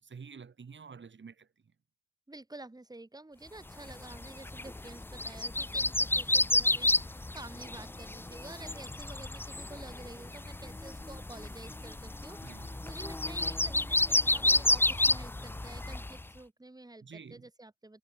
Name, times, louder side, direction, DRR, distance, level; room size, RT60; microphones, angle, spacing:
voice 1, 0.0-1.5 12.4-12.8 17.0-17.4, right 5 dB, 40° right, 5.4 m, -49 dB
voice 2, 2.3-18.0, right 2 dB, 10° right, 7.9 m, -50 dB
sound 1, 3.8-16.2, left 2 dB, 5° left, 0.5 m, -31 dB
cardioid pair, 90°, 30 cm